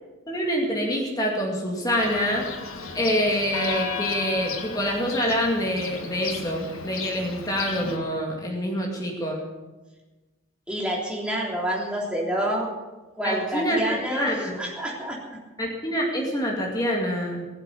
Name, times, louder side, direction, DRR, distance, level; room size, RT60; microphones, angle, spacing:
voice 1, 0.3-2.5 2.9-9.4 13.2-14.6 15.6-17.4, equal, 20° left, -1 dB, 2.3 m, -26 dB
Church bell, 2.0-8.0, left 4 dB, 85° left, 1.8 m, -35 dB
voice 2, 10.7-12.7 13.1-15.4, right 1 dB, 5° right, -3 dB, 3.4 m, -28 dB
20.5 x 7.6 x 8.4 m, 1.2 s
head